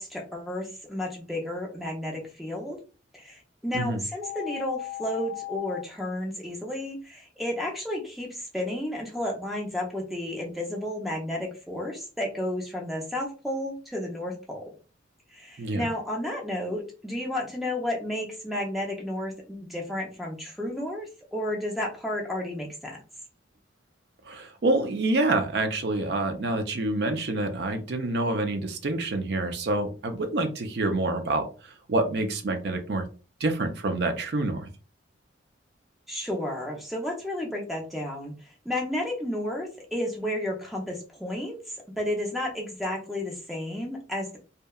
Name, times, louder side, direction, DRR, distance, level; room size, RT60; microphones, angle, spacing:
voice 1, 0.0-2.8 3.1-14.7 15.3-23.0 36.1-38.3 38.6-41.6 42.0-44.4, left 1 dB, ahead, 0 dB, 0.5 m, -32 dB
sound 1, 4.2-5.8, left 17 dB, 65° left, 0.3 m, -36 dB
voice 2, 15.6-15.9 24.3-33.1 33.4-34.7, right 2 dB, 55° right, 5 dB, 0.4 m, -27 dB
2.8 x 2.2 x 2.3 m, 0.35 s
head